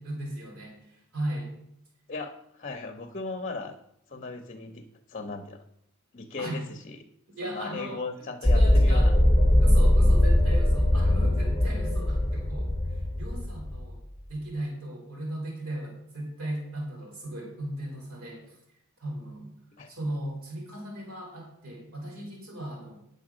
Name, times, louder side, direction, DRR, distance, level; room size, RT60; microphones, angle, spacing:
voice 1, 0.0-1.6 6.4-6.6 7.3-9.2 9.6-14.0 14.3-18.6 19.0-19.5 19.9-23.0, right 1 dB, 80° right, 0 dB, 3.5 m, -37 dB
voice 2, 2.1-3.8 4.1-5.6 6.1-7.0 7.4-9.1 19.8-19.9, left 3 dB, 35° left, 7 dB, 0.7 m, -37 dB
sound 1, 8.4-13.9, left 1 dB, 10° left, 0.9 m, -21 dB
9.9 x 6.8 x 6.1 m, 0.77 s
head